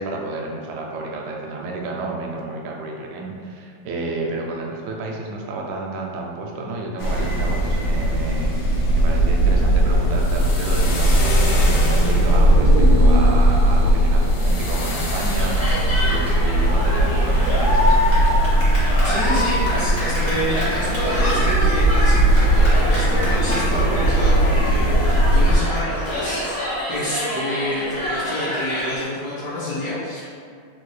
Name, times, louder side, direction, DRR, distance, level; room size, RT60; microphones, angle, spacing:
voice 1, 0.0-8.5 8.9-18.0, right 2 dB, 75° right, 0 dB, 1.0 m, -30 dB
sound 1, 7.0-25.6, right 1 dB, 80° left, 1.4 m, -18 dB
sound 2, 11.9-15.7 16.0-16.1, right 2 dB, 90° right, 1.4 m, -28 dB
Cheering, 15.4-29.0, left 1 dB, 40° left, 0.9 m, -26 dB
voice 2, 19.0-30.4, left 1 dB, 65° left, -9 dB, 1.0 m, -28 dB
3.8 x 2.3 x 3.1 m, 2.2 s
omnidirectional pair, 2.1 m